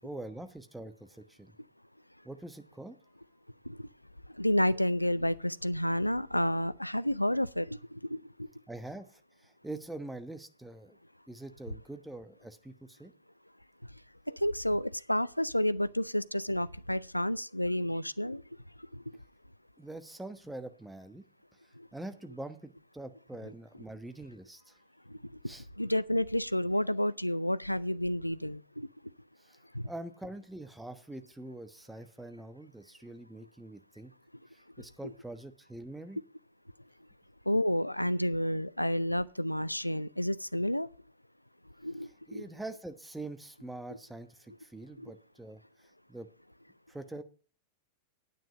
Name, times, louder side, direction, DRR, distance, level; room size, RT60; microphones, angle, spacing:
voice 1, 0.0-1.5 2.2-3.0 8.7-11.0 11.3-13.1 19.8-21.3 21.6-24.8 25.4-25.7 29.4-29.6 29.8-34.1 34.5-36.2 42.0-46.3 46.9-47.2, right 2 dB, 5° right, 1.1 m, -44 dB
voice 2, 4.4-8.2 14.3-18.4 25.8-28.9 29.7-29.8 37.5-40.9 41.8-42.4 45.0-45.1, left 1 dB, 90° left, 0.4 m, -30 dB
9.3 x 9.2 x 4.9 m
figure-of-eight pair, 90°, 0 cm